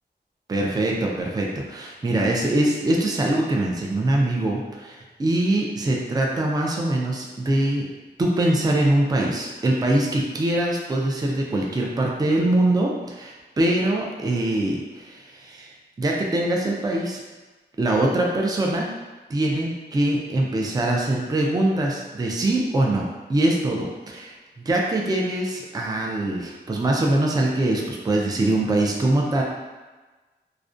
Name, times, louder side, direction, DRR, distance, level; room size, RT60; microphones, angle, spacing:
voice 1, 0.5-7.8 8.2-15.7 16.0-17.2 17.8-18.9 19.3-29.4, right 1 dB, 20° right, -1 dB, 0.3 m, -23 dB
2.4 x 2.1 x 2.5 m, 1.2 s
wide cardioid pair, 85°, 19 cm